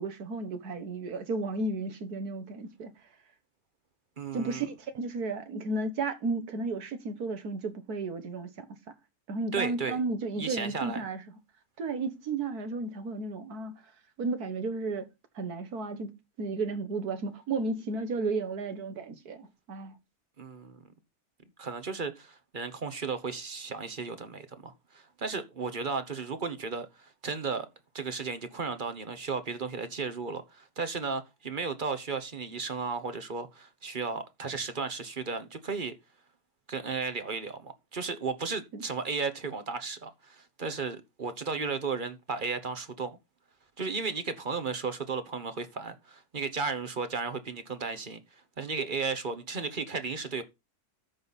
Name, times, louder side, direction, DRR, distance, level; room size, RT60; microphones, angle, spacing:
voice 1, 0.0-2.9 4.3-8.9 9.3-11.2 11.8-13.8 14.2-15.1 15.4-16.1 16.4-20.0 38.7-38.8 48.8-48.9, right 3 dB, 80° right, 1.9 m, -33 dB
voice 2, 4.2-4.7 9.5-10.0 10.4-11.0 20.4-20.8 21.6-27.7 27.9-35.9 36.7-43.1 43.8-48.2 48.6-50.4, right 4 dB, 35° right, 1.1 m, -34 dB
13.0 x 5.5 x 4.1 m
omnidirectional pair, 1.6 m